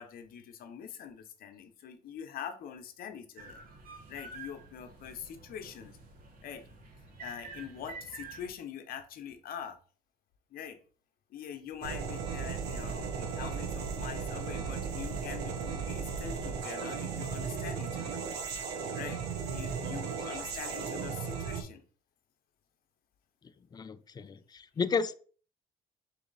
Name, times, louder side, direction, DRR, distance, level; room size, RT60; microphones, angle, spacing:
voice 1, 0.0-3.6 4.1-6.0 6.4-6.7 7.2-9.8 10.5-10.8 11.3-18.2 18.9-19.2 19.5-21.8, left 8 dB, 60° left, 7 dB, 0.7 m, -44 dB
sound 1, 3.4-8.5, right 4 dB, 60° right, 1.1 m, -49 dB
sound 2, 11.8-21.6, right 6 dB, 80° right, 0.8 m, -36 dB
voice 2, 23.7-25.1, left 5 dB, 25° left, 13 dB, 0.3 m, -32 dB
3.9 x 2.8 x 4.0 m, 0.41 s
cardioid pair, 110°, 17 cm